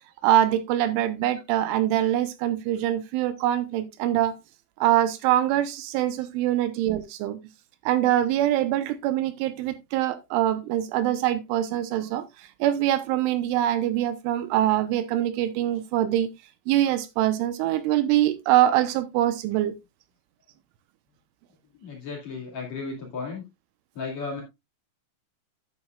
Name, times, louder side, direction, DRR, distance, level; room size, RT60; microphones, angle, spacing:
voice 1, 0.2-4.4 4.8-7.4 7.9-12.2 12.6-16.3 16.7-19.7, right 12 dB, 80° right, 3.3 m, -24 dB
voice 2, 21.8-23.4 23.9-24.4, left 4 dB, 45° left, 2.8 m, -34 dB
10.5 x 9.2 x 2.4 m
omnidirectional pair, 5.6 m